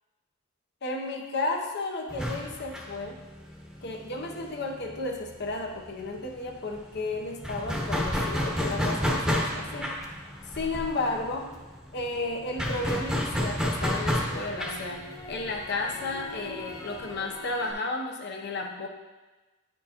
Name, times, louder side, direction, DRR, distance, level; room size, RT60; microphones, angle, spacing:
voice 1, 0.8-3.2 3.8-10.0 10.5-11.5 11.9-18.9, left 2 dB, 55° left, 2 dB, 0.7 m, -33 dB
sound 1, 2.1-5.5 5.8-5.9 6.2-17.1, equal, 5° right, 0.9 m, -31 dB
Crackle, 8.0-12.2 12.6-17.7, left 1 dB, 15° left, 0.5 m, -44 dB
9.3 x 4.5 x 2.9 m, 1.2 s
head